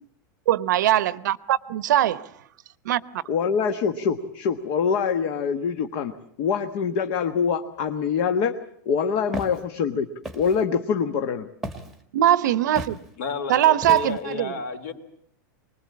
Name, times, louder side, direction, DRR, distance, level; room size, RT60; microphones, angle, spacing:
voice 1, 0.5-2.3 2.8-3.2 12.1-13.0 13.5-14.5, right 12 dB, 65° right, 0.9 m, -21 dB
voice 2, 3.3-6.1 6.4-8.5 8.8-10.1 10.3-11.5, left 6 dB, 35° left, 1.2 m, -24 dB
Walk footsteps, 9.3-9.6 10.2-10.6 11.6-12.0 12.8-13.0 13.8-14.3, right 1 dB, ahead, 1.6 m, -34 dB
voice 3, 13.2-14.9, left 5 dB, 50° left, 3.7 m, -32 dB
25.0 x 20.5 x 8.6 m
supercardioid pair, 180°, 11 cm